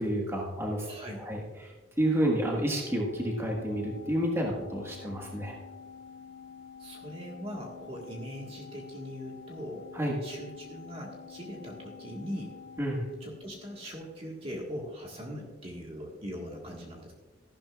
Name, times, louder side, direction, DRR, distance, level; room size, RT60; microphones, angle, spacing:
voice 1, 0.0-0.9 1.2-1.7 2.0-5.6 9.9-10.1 12.8-13.0, right 1 dB, 15° right, -1 dB, 1.5 m, -30 dB
voice 2, 0.8-1.2 6.8-9.8 10.2-12.5 13.2-17.1, equal, 30° right, -1 dB, 1.6 m, -41 dB
Organ, 2.7-14.0, left 6 dB, 80° left, 2.0 m, -49 dB
14.5 x 12.0 x 2.4 m, 1.3 s
head